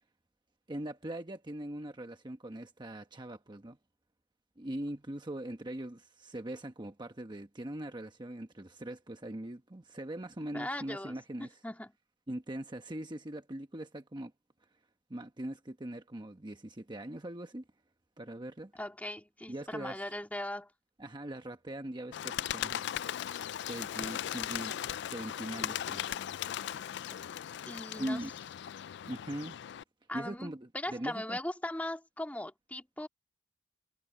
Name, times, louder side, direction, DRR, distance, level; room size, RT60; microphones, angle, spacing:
voice 1, 0.7-3.8 4.6-11.6 12.3-14.3 15.1-17.6 18.2-18.7 19.5-20.1 21.0-22.8 23.7-26.0 28.0-28.3 29.1-29.6 30.1-31.4, right 1 dB, 25° right, 1.1 m, -41 dB
voice 2, 10.5-11.2 11.6-11.9 18.7-20.7 27.6-28.2 30.1-33.1, left 1 dB, 10° left, 2.3 m, -39 dB
Bird, 22.1-29.8, left 10 dB, 65° left, 0.3 m, -38 dB
head